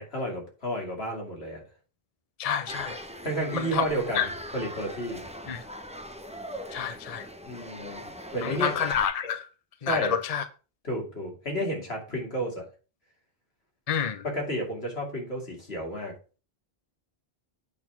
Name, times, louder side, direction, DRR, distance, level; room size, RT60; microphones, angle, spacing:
voice 1, 0.0-1.6 3.2-4.3 4.5-5.2 7.4-8.1 8.3-8.7 9.8-10.1 10.8-12.7 14.2-16.1, right 1 dB, 80° left, 3.0 m, -31 dB
voice 2, 2.4-3.0 3.5-3.8 4.1-4.3 5.5-5.6 6.7-7.3 8.4-9.5 9.8-10.4 13.9-14.2, left 7 dB, 40° left, 0.7 m, -28 dB
sound 1, 2.7-9.1, equal, 5° right, 0.7 m, -41 dB
8.6 x 4.3 x 5.7 m
omnidirectional pair, 1.0 m